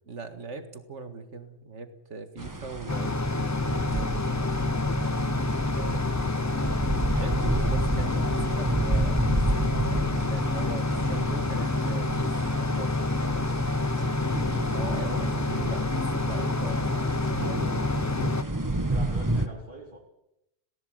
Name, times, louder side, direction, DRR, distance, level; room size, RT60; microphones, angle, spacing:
voice 1, 0.1-4.3 5.7-6.2 7.1-10.0 10.3-12.9 14.7-17.9, right 4 dB, 80° right, 8 dB, 2.2 m, -40 dB
sound 1, 2.4-19.5, right 1 dB, 15° right, 1.3 m, -31 dB
sound 2, 2.9-18.4, left 2 dB, 20° left, 0.5 m, -28 dB
voice 2, 5.9-6.6 18.9-20.0, equal, 45° right, -3 dB, 3.4 m, -45 dB
19.0 x 18.0 x 8.0 m, 0.84 s
omnidirectional pair, 1.2 m